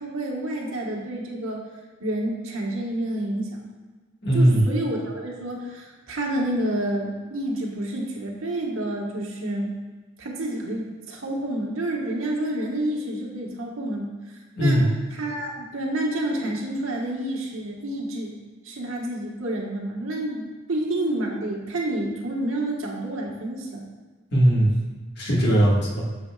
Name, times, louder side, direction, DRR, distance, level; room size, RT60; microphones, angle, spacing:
voice 1, 0.0-1.7 2.0-3.6 4.3-9.7 10.2-14.1 14.6-14.9 15.1-18.4 18.6-23.8, right 1 dB, 90° right, -1 dB, 1.4 m, -29 dB
voice 2, 4.2-4.7 14.6-14.9 24.3-24.7 25.2-26.1, right 1 dB, 55° left, -4 dB, 1.8 m, -19 dB
8.8 x 7.0 x 2.4 m, 1.3 s
head